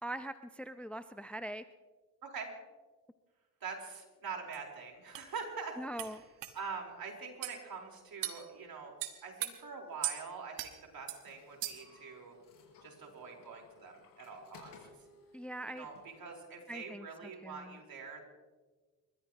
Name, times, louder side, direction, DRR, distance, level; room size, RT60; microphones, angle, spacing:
voice 1, 0.0-1.6 5.8-6.2 15.3-15.9 16.7-17.1 17.4-17.8, right 1 dB, 5° left, 11 dB, 0.7 m, -42 dB
voice 2, 3.6-6.2 6.5-8.9 9.2-12.3 12.8-14.7 15.7-18.2, right 5 dB, 55° right, 1 dB, 4.6 m, -44 dB
sound 1, 4.5-4.6 5.1-5.3 6.0-6.1 6.4-6.6 7.4-7.6 8.2-8.4 9.0-9.5 10.0-10.2 10.6-10.7 11.1-11.2 11.6-11.9, right 13 dB, 80° right, 1.4 m, -38 dB
sound 2, 9.9-16.3, left 4 dB, 70° left, 6.0 m, -60 dB
29.5 x 14.0 x 3.1 m, 1.3 s
hypercardioid pair, 55°, 43 cm